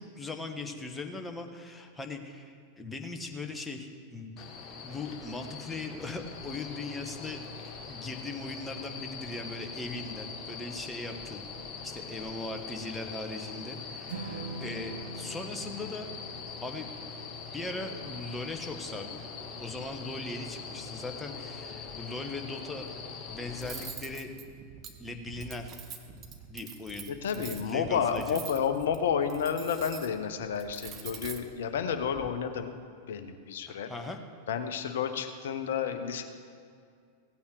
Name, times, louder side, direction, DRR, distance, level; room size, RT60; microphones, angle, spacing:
voice 1, 0.0-4.3 4.8-7.4 7.9-11.5 11.8-16.1 16.6-16.9 17.5-19.2 19.6-22.9 23.3-24.3 25.0-25.8 26.5-28.4 33.7-34.2, left 2 dB, 10° left, 5 dB, 1.2 m, -39 dB
sound 1, 4.4-23.9, left 5 dB, 30° left, 1.6 m, -42 dB
Strum, 14.1-20.4, right 2 dB, 65° right, 1.3 m, -45 dB
Cutlery silverware, 23.6-32.3, right 7 dB, 30° right, 1.1 m, -45 dB
voice 2, 27.1-32.7 33.1-33.9 34.5-36.2, left 7 dB, 60° left, 8 dB, 0.9 m, -31 dB
16.5 x 8.6 x 4.9 m, 2.2 s
figure-of-eight pair, 90°, 0 cm